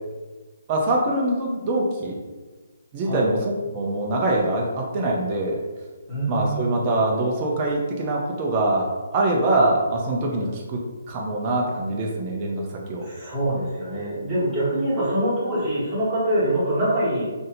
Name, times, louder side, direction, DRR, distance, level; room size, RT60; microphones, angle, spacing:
voice 1, 0.7-2.2 2.9-5.6 6.3-10.8 11.1-13.1, right 2 dB, 20° right, -2 dB, 0.4 m, -24 dB
voice 2, 6.1-6.6 10.3-10.6 13.0-17.3, right 1 dB, ahead, -14 dB, 1.0 m, -24 dB
2.6 x 2.6 x 4.1 m, 1.3 s
hypercardioid pair, 175°, 0 cm